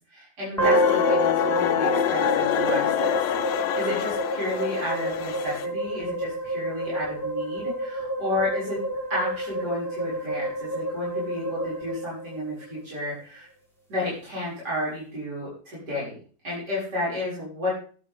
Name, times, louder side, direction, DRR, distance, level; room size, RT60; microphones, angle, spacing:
voice 1, 0.1-3.2 3.4-8.8 9.1-13.5 13.9-16.2 16.4-17.7, left 1 dB, 60° right, -8 dB, 7.2 m, -32 dB
sound 1, 0.6-5.7, left 11 dB, 75° left, 1.4 m, -26 dB
sound 2, 0.6-12.8, right 1 dB, ahead, 4.9 m, -29 dB
13.0 x 12.0 x 3.8 m, 0.41 s
omnidirectional pair, 2.0 m